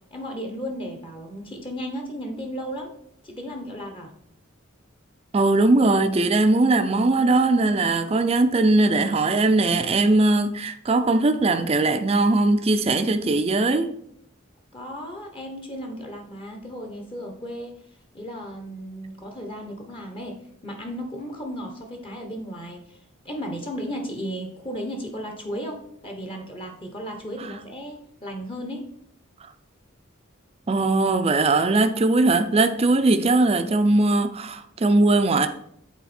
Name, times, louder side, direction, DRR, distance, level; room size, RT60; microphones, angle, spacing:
voice 1, 0.1-2.9 3.2-4.1 14.7-17.8 18.1-20.4 20.6-28.8, equal, 25° left, 0.9 m, -35 dB
voice 2, 5.3-13.9 30.7-35.5, right 2 dB, 30° right, 0.4 m, -20 dB
8.3 x 4.2 x 4.3 m
head